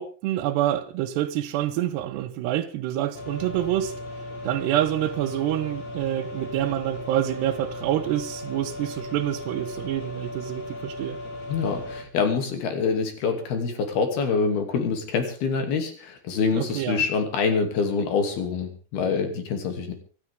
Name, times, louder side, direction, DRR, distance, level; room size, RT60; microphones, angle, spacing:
voice 1, 0.0-3.9 4.4-11.2 16.5-17.0, right 12 dB, 90° right, 3.0 m, -27 dB
sound 1, 3.1-12.0, left 1 dB, 45° left, 4.6 m, -37 dB
voice 2, 11.5-19.9, left 5 dB, 70° left, 4.5 m, -25 dB
25.5 x 13.0 x 3.6 m
omnidirectional pair, 4.7 m